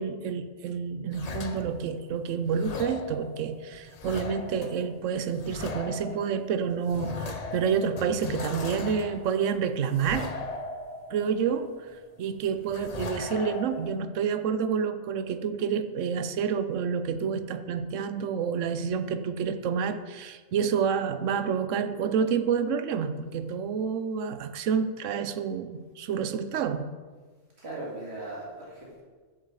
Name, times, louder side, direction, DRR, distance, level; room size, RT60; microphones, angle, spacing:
voice 1, 0.0-10.3 11.1-11.8 12.2-26.9, right 6 dB, 85° right, 11 dB, 1.0 m, -29 dB
sound 1, 1.1-2.1 2.5-12.0 12.4-14.0, left 4 dB, 40° left, 0.8 m, -38 dB
voice 2, 27.6-29.0, right 2 dB, 60° right, -5 dB, 2.8 m, -38 dB
8.0 x 7.3 x 7.0 m, 1.4 s
omnidirectional pair, 1.3 m